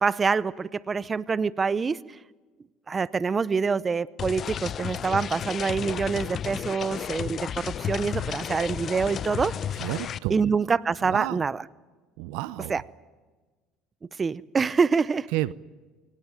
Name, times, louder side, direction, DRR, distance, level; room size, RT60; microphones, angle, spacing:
voice 1, 0.0-2.0 2.9-9.5 10.3-11.6 12.7-12.8 14.2-15.3, right 5 dB, 30° right, 18 dB, 0.7 m, -26 dB
sound 1, 4.2-10.2, left 8 dB, 45° left, 0.8 m, -33 dB
voice 2, 9.8-10.4 11.0-11.5 12.2-12.8 15.3-15.5, right 17 dB, 75° right, 18 dB, 0.7 m, -30 dB
23.5 x 19.5 x 9.2 m, 1.3 s
supercardioid pair, 85°, 0 cm